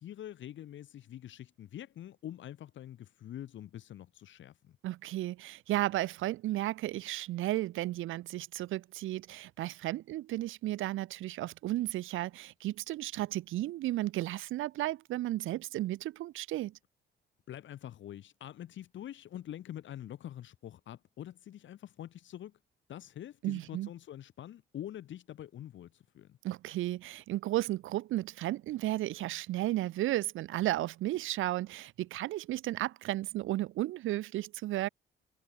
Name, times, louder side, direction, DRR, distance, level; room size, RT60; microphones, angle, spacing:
voice 1, 0.0-4.8 17.5-22.5 22.9-26.4, left 11 dB, 70° left, 3.1 m, -45 dB
voice 2, 4.8-16.7 23.4-23.9 26.4-34.9, right 15 dB, 85° right, 1.0 m, -34 dB
cardioid pair, 90°, 20 cm